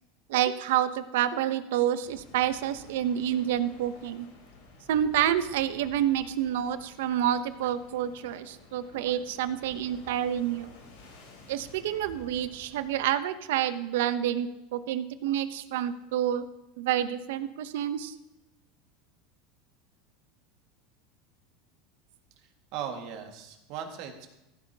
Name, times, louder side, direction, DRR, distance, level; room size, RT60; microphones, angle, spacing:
voice 1, 0.3-4.3 4.9-10.7 11.5-16.4 16.8-18.1, right 11 dB, 80° right, 13 dB, 0.7 m, -28 dB
sound 1, 2.0-13.0, left 3 dB, 85° left, 3.1 m, -52 dB
voice 2, 22.7-24.3, right 8 dB, 60° right, 4 dB, 1.8 m, -38 dB
15.5 x 9.7 x 2.8 m, 0.94 s
supercardioid pair, 125°, 0 cm